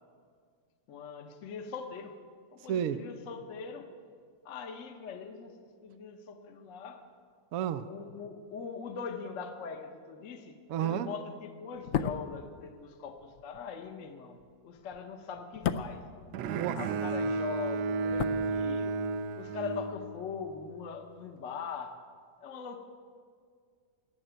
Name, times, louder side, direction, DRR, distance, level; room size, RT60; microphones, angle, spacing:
voice 1, 0.9-2.1 2.5-3.9 4.4-7.1 7.9-14.4 14.6-16.0 16.7-19.0 19.4-21.9 22.4-22.8, left 6 dB, 50° left, 6 dB, 1.2 m, -41 dB
voice 2, 2.7-3.0 7.5-7.9 10.7-11.1 16.4-16.8 17.2-17.3, right 9 dB, 65° right, 11 dB, 0.9 m, -31 dB
sound 1, 11.7-17.1 17.3-19.2 19.4-19.6, left 8 dB, 75° left, 0.7 m, -37 dB
Bowed string instrument, 16.3-20.6, right 4 dB, 80° right, 1.3 m, -33 dB
14.0 x 8.6 x 9.1 m, 2.1 s
omnidirectional pair, 2.0 m